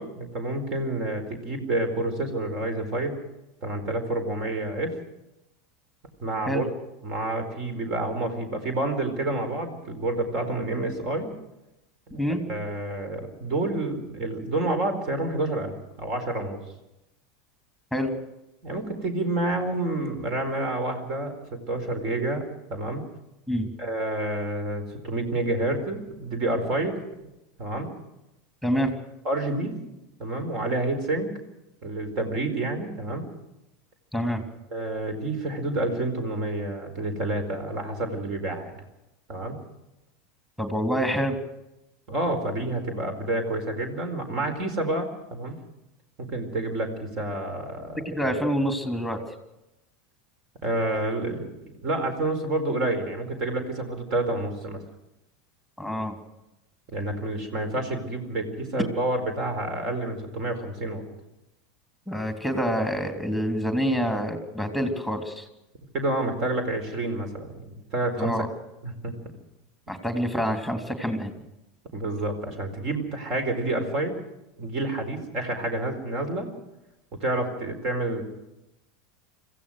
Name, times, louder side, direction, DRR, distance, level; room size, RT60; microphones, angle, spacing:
voice 1, 0.0-3.2 3.6-5.0 6.2-6.6 7.0-11.3 12.1-12.2 12.5-16.6 18.6-22.4 22.7-23.0 23.8-27.0 27.6-27.9 29.2-29.8 30.2-31.3 31.8-33.3 34.7-38.8 39.3-39.6 42.1-45.6 46.2-48.3 50.6-54.8 56.9-61.0 65.9-68.4 68.8-69.1 71.9-74.2 74.6-76.5 77.2-78.2, right 2 dB, 45° right, 8 dB, 4.5 m, -29 dB
voice 2, 28.6-28.9 34.1-34.4 40.6-41.4 48.0-49.2 55.8-56.2 62.1-65.5 68.2-68.5 69.9-71.3, equal, 5° right, 5 dB, 3.5 m, -26 dB
26.0 x 15.5 x 6.4 m, 0.90 s
figure-of-eight pair, 80°, 0 cm